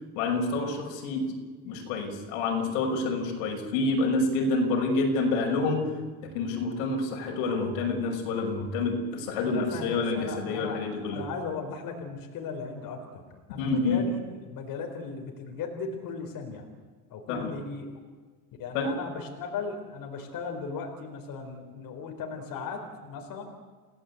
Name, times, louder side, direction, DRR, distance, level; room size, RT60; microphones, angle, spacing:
voice 1, 0.2-1.4 1.6-5.9 6.2-11.2 13.6-14.0 17.3-17.5 18.7-18.9, left 3 dB, 80° left, 3 dB, 6.0 m, -28 dB
voice 2, 9.4-13.2 13.5-14.2 14.5-16.7 17.1-17.9 18.6-23.4, left 5 dB, 50° left, 3 dB, 4.4 m, -37 dB
29.0 x 18.0 x 8.5 m, 1.5 s
cardioid pair, 135°, 44 cm